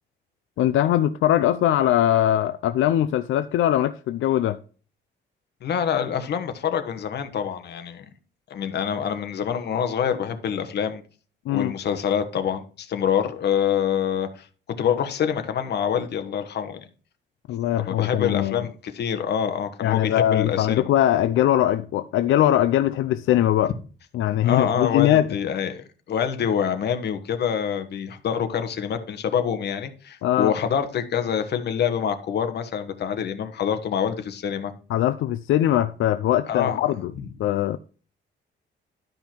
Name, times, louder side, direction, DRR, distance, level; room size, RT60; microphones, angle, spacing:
voice 1, 0.6-4.6 11.5-11.7 17.5-18.7 19.8-23.7 24.1-25.3 30.2-30.5 34.9-37.1 37.4-37.8, left 12 dB, 90° left, 0.5 m, -21 dB
voice 2, 5.6-8.0 8.5-11.0 11.5-14.5 14.8-16.8 17.9-20.8 24.4-34.7 36.5-36.8, left 8 dB, 55° left, 1.3 m, -26 dB
12.0 x 5.5 x 4.5 m
cardioid pair, 155°, 20 cm